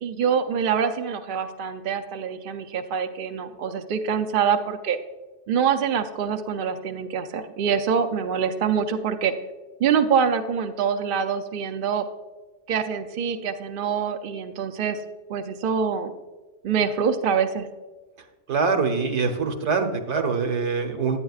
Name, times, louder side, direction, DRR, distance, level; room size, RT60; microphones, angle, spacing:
voice 1, 0.0-5.0 5.5-9.3 9.8-12.0 12.7-15.0 15.3-16.1 16.6-17.7, right 7 dB, 60° right, 7 dB, 0.6 m, -25 dB
voice 2, 18.5-21.2, right 4 dB, 75° right, 5 dB, 1.2 m, -24 dB
10.5 x 8.7 x 2.4 m, 1.2 s
omnidirectional pair, 1.2 m